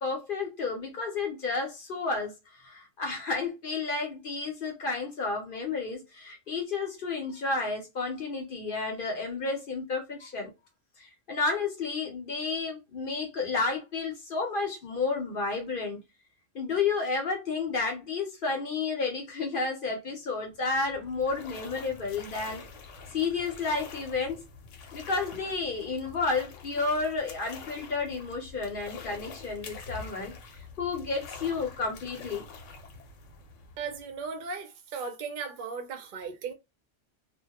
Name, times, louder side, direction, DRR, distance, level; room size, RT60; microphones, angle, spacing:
voice 1, 0.0-10.5 11.0-16.0 16.5-22.7 23.1-24.4 24.9-30.3 30.8-32.4, left 4 dB, 55° left, 0.8 m, -31 dB
sound 1, 20.5-34.3, left 5 dB, 85° left, 0.9 m, -46 dB
voice 2, 33.8-36.5, right 5 dB, 55° right, 0.6 m, -37 dB
2.2 x 2.1 x 2.8 m
omnidirectional pair, 1.2 m